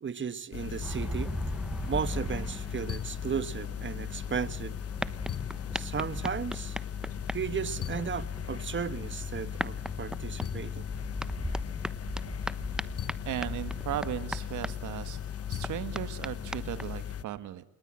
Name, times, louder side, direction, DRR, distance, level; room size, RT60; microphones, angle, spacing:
voice 1, 0.0-1.3 1.9-4.7 5.7-6.8 7.3-10.8, right 7 dB, 40° right, 1.6 m, -35 dB
sound 1, 0.5-17.2, left 9 dB, 50° left, 1.1 m, -37 dB
sound 2, 0.8-16.9, equal, ahead, 1.0 m, -39 dB
voice 2, 13.3-15.2 15.5-17.6, right 12 dB, 80° right, 1.9 m, -36 dB
29.0 x 20.5 x 7.7 m
cardioid pair, 90°, 30 cm